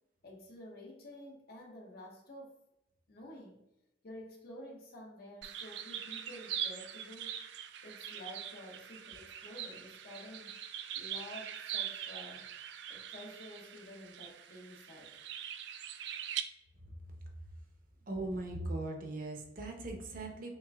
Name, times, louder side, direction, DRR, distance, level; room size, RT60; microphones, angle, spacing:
voice 1, 0.2-2.6 3.1-3.6 4.0-7.3 7.8-10.6 10.9-12.4 12.9-15.1, left 1 dB, 60° left, -1 dB, 1.0 m, -50 dB
sound 1, 5.4-16.4, right 9 dB, 75° right, 0.3 m, -42 dB
voice 2, 18.1-20.5, right 2 dB, 50° right, 3 dB, 0.8 m, -39 dB
6.3 x 2.6 x 2.3 m, 0.87 s
head